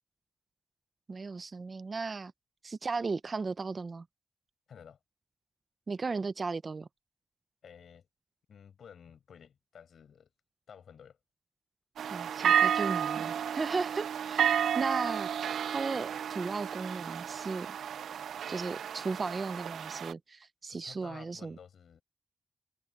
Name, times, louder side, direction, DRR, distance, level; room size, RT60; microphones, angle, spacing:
voice 1, 1.1-2.3 2.6-4.0 5.9-6.9 12.1-15.3 15.7-17.7 18.5-21.6, right 4 dB, 35° right, 0.6 m, -35 dB
voice 2, 4.7-5.0 7.6-8.1 8.5-10.3 10.7-11.2 20.7-22.0, left 7 dB, 70° left, 7.4 m, -53 dB
sound 1, 12.0-20.1, right 9 dB, 90° right, 0.4 m, -31 dB
wide cardioid pair, 135°, 0 cm